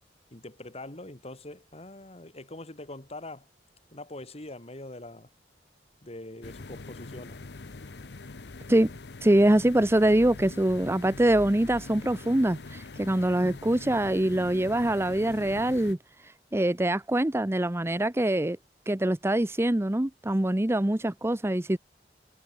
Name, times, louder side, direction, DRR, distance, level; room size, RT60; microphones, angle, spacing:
voice 1, 0.3-3.5 3.9-5.3 6.0-7.4, left 2 dB, 35° left, 2.6 m, -43 dB
sound 1, 6.4-15.9, left 3 dB, 70° left, 0.9 m, -43 dB
voice 2, 9.2-16.0 16.5-18.6 18.9-21.8, right 1 dB, 15° right, 0.7 m, -24 dB
head